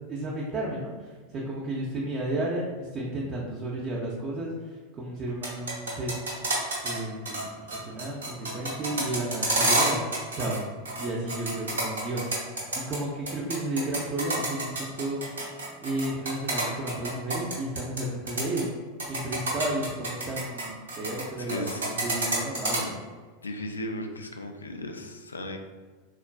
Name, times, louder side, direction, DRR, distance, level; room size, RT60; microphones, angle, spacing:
voice 1, 0.1-6.1 6.8-10.0 10.3-10.6 11.0-12.3 12.7-15.2 15.8-18.7 19.0-23.0, right 1 dB, 30° right, -4 dB, 0.5 m, -33 dB
sound 1, 5.3-7.0 7.2-7.4 7.7-10.6 10.8-13.0 13.3-18.0 18.3-18.6 19.0-21.2 21.5-22.8, right 2 dB, 75° right, 1.0 m, -28 dB
voice 2, 21.4-21.8 22.7-22.9 23.4-25.6, left 1 dB, 80° left, 5 dB, 0.3 m, -36 dB
3.7 x 2.4 x 2.2 m, 1.4 s
figure-of-eight pair, 85°, 0 cm